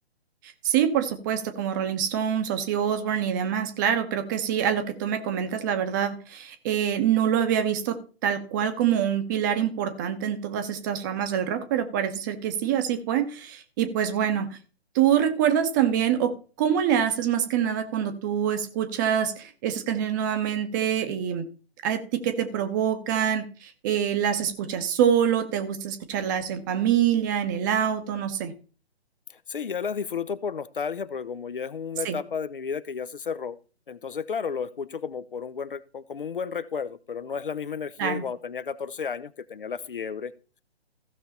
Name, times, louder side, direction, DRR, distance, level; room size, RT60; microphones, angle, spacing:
voice 1, 0.4-8.0 8.2-14.6 14.9-21.5 21.8-28.5 32.0-32.2 38.0-38.2, right 9 dB, 20° right, 8 dB, 1.0 m, -25 dB
voice 2, 29.3-33.6 33.9-40.3, left 6 dB, 55° left, 16 dB, 0.8 m, -32 dB
15.5 x 6.6 x 4.2 m, 0.36 s
figure-of-eight pair, 135°, 32 cm